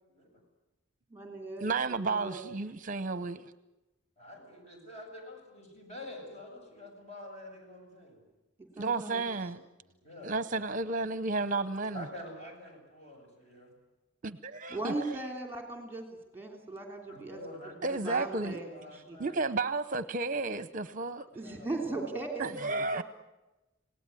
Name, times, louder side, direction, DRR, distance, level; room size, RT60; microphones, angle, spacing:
voice 1, 0.1-0.4 4.2-8.2 9.9-10.4 11.9-13.7 17.1-19.6 21.3-22.2, left 1 dB, 35° left, 1 dB, 7.5 m, -47 dB
voice 2, 1.1-2.4 8.6-9.2 14.7-17.4 17.9-18.7 19.1-19.2 21.3-23.0, right 2 dB, 10° right, 3 dB, 3.2 m, -38 dB
voice 3, 1.6-3.5 8.8-9.6 10.2-12.0 14.2-14.9 17.8-18.6 19.2-21.3 22.4-23.0, right 3 dB, 40° right, 14 dB, 0.8 m, -32 dB
27.5 x 18.0 x 9.7 m, 1.0 s
head